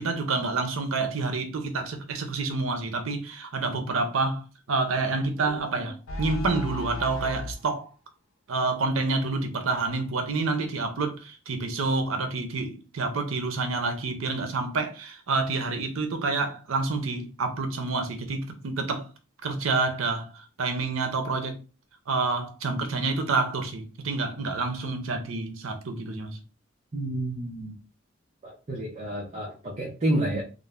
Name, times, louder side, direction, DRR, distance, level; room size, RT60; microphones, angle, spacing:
voice 1, 0.0-4.4 4.7-7.9 8.5-19.1 19.4-21.6 22.1-26.4, right 3 dB, 80° right, 0.6 m, -28 dB
sound 1, 5.5-7.6, left 2 dB, 80° left, 0.6 m, -35 dB
voice 2, 26.9-27.8 28.4-30.4, right 1 dB, 35° right, 0.6 m, -29 dB
2.5 x 2.0 x 3.1 m
head